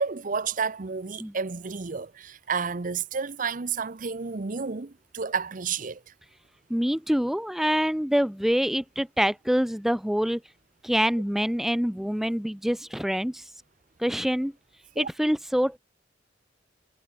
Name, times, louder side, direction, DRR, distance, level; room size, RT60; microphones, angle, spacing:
voice 1, 0.0-6.0 15.0-15.1, right 5 dB, 45° right, 0.7 m, -31 dB
voice 2, 6.7-10.4 10.8-13.4 14.0-14.5 15.0-15.8, equal, ahead, 0.4 m, -25 dB
head